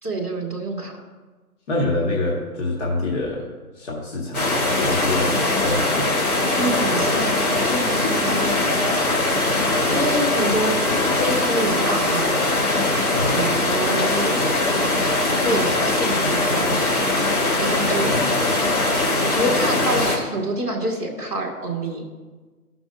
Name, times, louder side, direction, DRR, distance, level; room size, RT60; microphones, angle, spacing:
voice 1, 0.0-1.0 6.5-8.8 9.5-10.8 11.1-12.4 13.3-14.4 15.3-16.7 17.5-18.1 19.2-22.0, right 1 dB, 10° left, -10 dB, 0.5 m, -27 dB
voice 2, 1.7-3.5 3.7-6.1 13.1-13.4 18.0-18.4, left 2 dB, 50° left, -2 dB, 1.6 m, -26 dB
sound 1, 4.3-20.2, left 2 dB, 75° left, 2.6 m, -21 dB
14.5 x 6.0 x 2.6 m, 1.3 s
figure-of-eight pair, 135°, 45 cm